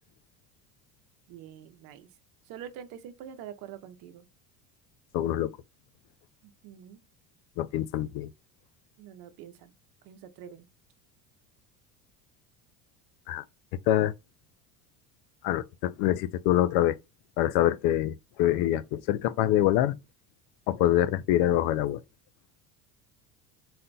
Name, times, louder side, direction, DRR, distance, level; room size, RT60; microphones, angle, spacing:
voice 1, 1.3-2.1 2.5-4.2 6.4-7.0 9.0-9.7 10.0-10.7, right 9 dB, 60° right, 0.8 m, -45 dB
voice 2, 5.1-5.5 7.6-8.3 13.3-13.4 13.9-14.1 15.4-17.0 17.4-20.0 20.7-22.0, left 13 dB, 65° left, 0.5 m, -25 dB
4.2 x 3.8 x 2.2 m
supercardioid pair, 115°, 39 cm